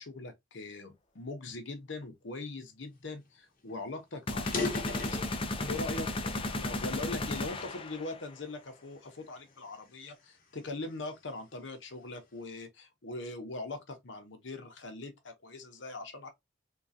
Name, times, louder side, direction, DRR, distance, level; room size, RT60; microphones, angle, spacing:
voice 1, 0.0-5.4 5.7-16.3, left 2 dB, 75° left, 0.9 m, -41 dB
sound 1, 3.3-3.4 3.7-3.8 4.3-5.9 6.5-7.7 8.3-8.6 9.2-11.2, left 3 dB, 50° left, 1.1 m, -39 dB
sound 2, 4.3-8.2, left 2 dB, 30° left, 0.4 m, -34 dB
3.7 x 2.3 x 2.6 m
head